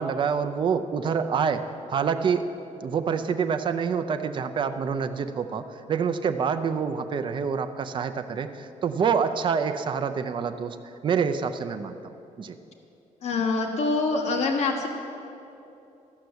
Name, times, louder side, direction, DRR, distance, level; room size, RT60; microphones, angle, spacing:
voice 1, 0.0-1.6 1.9-2.5 2.8-12.6, right 6 dB, 35° right, 8 dB, 0.5 m, -27 dB
voice 2, 13.2-14.9, left 3 dB, 55° left, 1 dB, 1.1 m, -25 dB
13.5 x 5.7 x 7.9 m, 2.8 s
cardioid pair, 175°, 14 cm